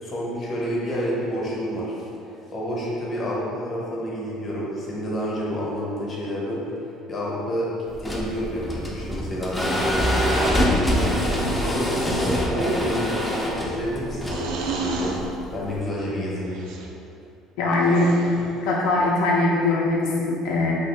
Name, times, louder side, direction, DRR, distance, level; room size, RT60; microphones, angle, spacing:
voice 1, 0.0-2.1 2.5-6.6 7.1-7.7 8.0-15.1 15.5-16.5, equal, 25° left, -5 dB, 0.7 m, -29 dB
sound 1, 7.9-15.8, equal, 5° left, 0.4 m, -25 dB
sound 2, 10.0-10.9 12.4-13.1 14.2-15.2 16.5-16.9 17.8-18.5, right 3 dB, 75° right, 0.3 m, -31 dB
voice 2, 17.6-18.2 18.6-20.7, left 2 dB, 80° left, -3 dB, 0.4 m, -21 dB
2.8 x 2.6 x 3.2 m, 2.7 s
cardioid pair, 145°, 0 cm